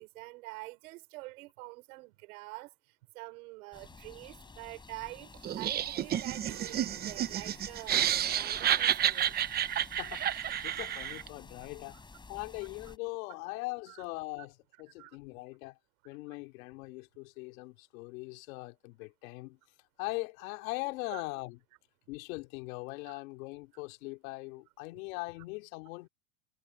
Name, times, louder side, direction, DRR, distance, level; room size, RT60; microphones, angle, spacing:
voice 1, 0.0-9.4 13.9-14.0 15.0-15.2 21.1-21.2 23.0-23.1, right 23 dB, 65° right, 4.4 m, -46 dB
sound 1, 3.7-13.0, left 4 dB, 10° left, 3.8 m, -52 dB
Laughter, 5.4-11.3, right 10 dB, 20° right, 0.8 m, -30 dB
sound 2, 6.5-8.9, right 17 dB, 40° right, 4.0 m, -55 dB
voice 2, 10.0-10.3 10.6-12.0 12.3-15.8 16.0-19.6 20.0-21.6 22.1-26.1, left 25 dB, 65° left, 2.9 m, -41 dB
supercardioid pair, 145°, 45 cm